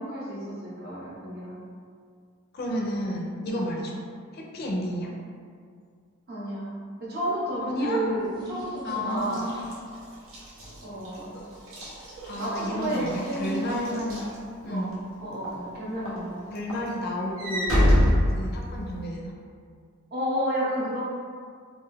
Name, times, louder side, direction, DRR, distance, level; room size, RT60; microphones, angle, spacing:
voice 1, 0.0-1.6 3.4-3.7 6.3-6.7 7.0-9.5 10.8-11.3 12.4-13.8 14.7-14.9 15.2-16.4 20.1-21.0, right 1 dB, 50° right, -7 dB, 0.8 m, -31 dB
voice 2, 2.5-4.0 4.3-5.1 7.6-8.0 8.8-10.0 12.2-14.2 14.6-15.0 16.5-19.3, equal, 50° left, -1 dB, 0.4 m, -31 dB
sound 1, 7.0-10.0, left 1 dB, 20° right, 0.5 m, -44 dB
Walk footsteps / Slam, 9.2-14.9 15.4-15.7 16.1-19.1, equal, 90° right, 0.8 m, -27 dB
2.5 x 2.3 x 3.3 m, 2.1 s
head